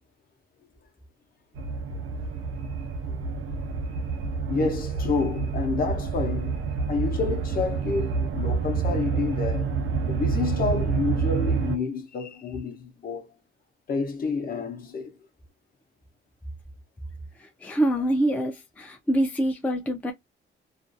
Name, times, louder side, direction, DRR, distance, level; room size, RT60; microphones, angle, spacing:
sound 1, 1.6-11.8, right 5 dB, 75° right, 0.7 m, -28 dB
voice 1, 4.4-9.7 10.1-13.3 13.9-15.2, left 4 dB, 45° left, 0.7 m, -29 dB
voice 2, 17.4-20.1, right 1 dB, 5° left, 0.4 m, -25 dB
2.4 x 2.3 x 2.5 m
wide cardioid pair, 180°, 21 cm